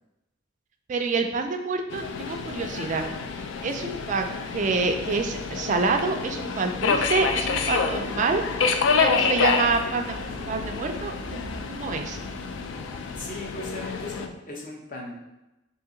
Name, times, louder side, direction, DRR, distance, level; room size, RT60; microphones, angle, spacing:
voice 1, 0.9-3.0 3.6-4.3 4.5-8.4 9.0-12.2, right 4 dB, 40° right, 5 dB, 0.3 m, -27 dB
Subway metro underground, 1.9-14.3, left 5 dB, 65° left, 0.3 m, -28 dB
sound 1, 7.5-12.0, right 1 dB, 10° left, 1.2 m, -45 dB
voice 2, 13.0-15.1, left 2 dB, 40° left, -2 dB, 0.7 m, -38 dB
2.8 x 2.8 x 3.7 m, 0.98 s
head